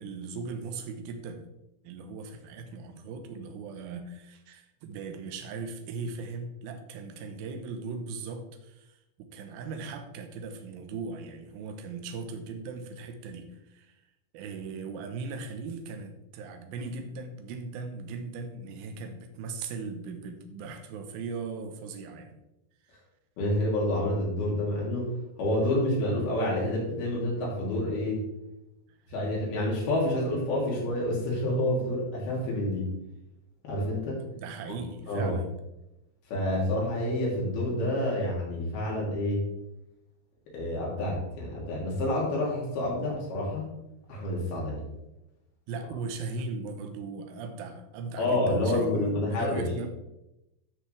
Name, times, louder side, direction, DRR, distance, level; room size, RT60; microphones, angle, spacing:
voice 1, 0.0-1.5 1.8-14.0 14.3-22.4 22.9-23.0 34.4-35.5 45.7-49.9, right 4 dB, 75° right, 6 dB, 2.5 m, -38 dB
voice 2, 23.4-25.1 25.4-28.2 29.1-32.9 33.6-34.2 35.1-35.4 36.3-39.5 40.5-43.7 44.1-44.8 48.2-49.7, left 1 dB, 65° left, -3 dB, 4.3 m, -28 dB
13.0 x 6.0 x 3.3 m, 0.91 s
omnidirectional pair, 4.9 m